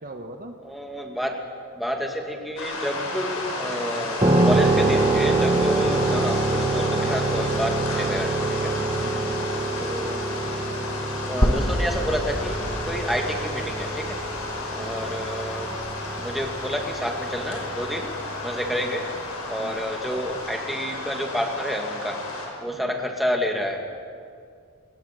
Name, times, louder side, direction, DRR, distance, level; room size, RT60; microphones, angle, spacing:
voice 1, 0.0-0.6 8.9-9.4 14.8-15.1 18.8-19.0 19.6-19.9 22.7-23.0, right 1 dB, 40° right, 5 dB, 1.3 m, -42 dB
voice 2, 0.6-1.4 1.7-8.7 9.8-10.2 11.3-14.2 14.7-15.7 16.2-18.1 18.4-19.1 19.5-23.8, equal, ahead, 1 dB, 2.2 m, -29 dB
sound 1, 2.6-22.5, left 2 dB, 85° left, 6.5 m, -32 dB
sound 2, 4.2-18.9, right 2 dB, 20° right, 1.3 m, -26 dB
sound 3, 11.4-15.4, equal, 25° left, 1.6 m, -28 dB
27.5 x 21.0 x 7.7 m, 2.2 s
head